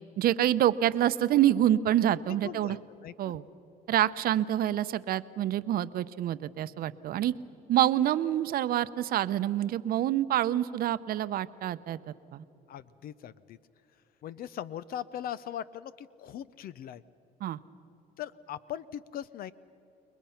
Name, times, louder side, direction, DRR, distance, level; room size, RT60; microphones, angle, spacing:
voice 1, 0.2-2.8 3.2-3.4 3.9-7.3 7.7-12.0 12.3-12.4 17.4-17.6, right 12 dB, 60° right, 14 dB, 0.7 m, -27 dB
voice 2, 2.3-2.8 3.0-3.4 12.7-13.6 14.2-17.0 18.2-19.5, left 10 dB, 60° left, 16 dB, 0.5 m, -40 dB
29.5 x 21.5 x 5.8 m, 2.9 s
cardioid pair, 110°, 17 cm